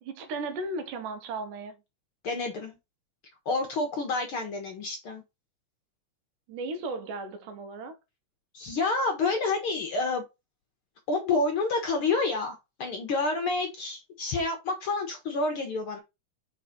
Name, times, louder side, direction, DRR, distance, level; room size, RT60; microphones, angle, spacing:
voice 1, 0.0-1.8 6.5-8.0, right 3 dB, 90° right, 2.6 m, -35 dB
voice 2, 2.2-2.8 3.4-5.2 8.5-10.2 11.1-16.0, left 3 dB, 60° left, 1.5 m, -29 dB
5.1 x 4.0 x 5.1 m
omnidirectional pair, 3.6 m